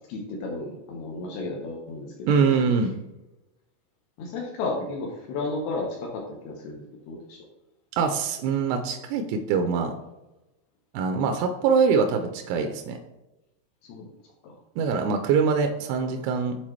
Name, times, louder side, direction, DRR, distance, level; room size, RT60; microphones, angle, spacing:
voice 1, 0.1-2.8 4.2-7.4 13.9-14.1 14.4-14.5, left 3 dB, 75° left, 0 dB, 2.6 m, -33 dB
voice 2, 2.3-3.0 8.0-9.9 10.9-13.0 14.8-16.6, right 5 dB, 85° right, 5 dB, 2.4 m, -23 dB
8.7 x 4.2 x 3.1 m, 0.97 s
omnidirectional pair, 5.1 m